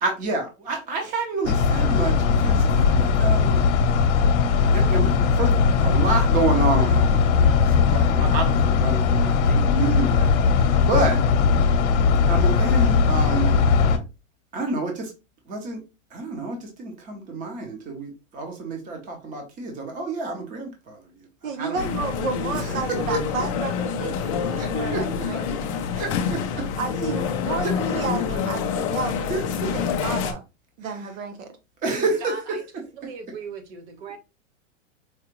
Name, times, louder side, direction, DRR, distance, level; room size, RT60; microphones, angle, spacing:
voice 1, 0.0-3.6 4.7-10.3 10.5-11.2 12.3-13.6 14.5-15.1 15.5-15.8 16.1-21.0 21.6-21.9 22.6-23.2 24.6-25.0 26.0-26.7 29.3-29.7 31.8-32.6, right 3 dB, 20° right, 0.9 m, -28 dB
sound 1, 1.4-14.0, left 5 dB, 60° left, 0.9 m, -19 dB
voice 2, 21.4-25.7 26.8-30.4 30.8-31.5, right 5 dB, 80° right, 1.1 m, -32 dB
sound 2, 21.8-30.3, left 7 dB, 25° left, 0.4 m, -27 dB
voice 3, 32.2-32.6 32.9-34.2, right 5 dB, 55° right, 1.3 m, -38 dB
4.8 x 2.4 x 3.0 m
hypercardioid pair, 145°, 40 cm